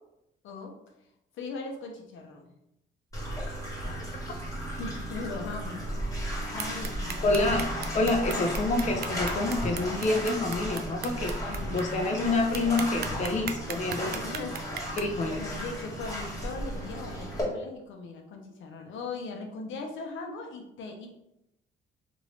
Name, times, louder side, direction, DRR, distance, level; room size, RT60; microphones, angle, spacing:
voice 1, 1.3-2.5 4.8-7.4 7.9-8.3 11.5-11.9 14.0-15.0 15.3-21.1, left 3 dB, 75° left, 2 dB, 0.7 m, -40 dB
Bathtub (filling or washing), 3.1-17.4, equal, 15° left, 1.4 m, -35 dB
sound 1, 6.6-11.8 12.2-12.3 12.5-15.0, right 8 dB, 55° right, 0.4 m, -36 dB
voice 2, 7.2-7.7 7.9-14.2 15.0-15.4, left 2 dB, 35° left, 3 dB, 0.5 m, -27 dB
2.9 x 2.6 x 3.1 m, 0.84 s
cardioid pair, 90°, 20 cm